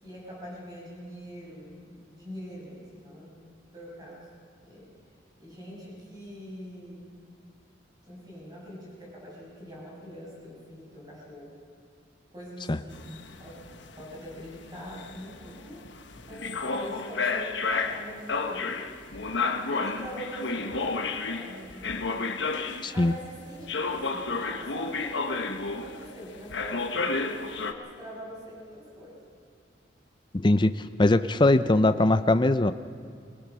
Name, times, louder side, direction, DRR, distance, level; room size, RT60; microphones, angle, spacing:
voice 1, 0.0-3.4 3.7-4.3 4.6-4.9 5.4-7.0 8.0-11.5 12.3-15.8 16.3-18.9 19.7-21.9 22.9-29.2, equal, 20° right, -4 dB, 6.8 m, -43 dB
sound 1, 12.9-23.1 23.7-26.2 26.5-27.7, left 4 dB, 70° left, 1.2 m, -31 dB
voice 2, 22.8-23.1 30.3-32.7, left 2 dB, 25° left, 10 dB, 0.5 m, -21 dB
23.5 x 19.0 x 6.2 m, 2.3 s
head